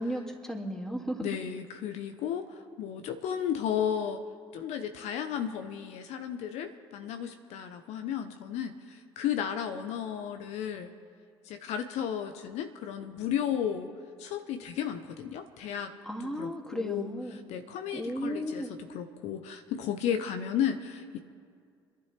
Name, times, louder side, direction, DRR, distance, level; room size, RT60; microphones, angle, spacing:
voice 1, 0.0-1.4 16.0-17.4 17.9-18.7, equal, 5° left, 1 dB, 2.5 m, -35 dB
voice 2, 1.2-4.2 4.5-10.9 11.4-13.9 14.2-15.9 16.4-18.6 18.9-21.2, left 9 dB, 65° left, 8 dB, 0.9 m, -34 dB
28.0 x 11.0 x 3.4 m, 2.2 s
hypercardioid pair, 60°, 12 cm